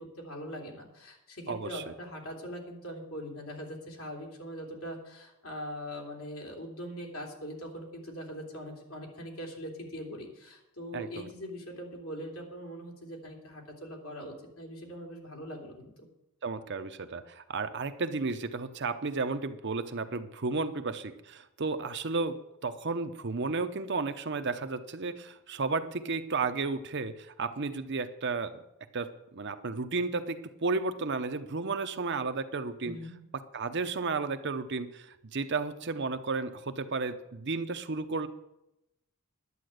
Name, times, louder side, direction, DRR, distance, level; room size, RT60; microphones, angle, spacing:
voice 1, 0.0-15.9 32.8-33.1, equal, 70° left, -1 dB, 3.2 m, -42 dB
voice 2, 1.5-1.8 10.9-11.3 16.4-22.4 22.6-28.6 28.9-33.0 33.5-38.3, right 4 dB, 55° right, 9 dB, 0.7 m, -33 dB
11.0 x 8.7 x 6.5 m, 0.88 s
head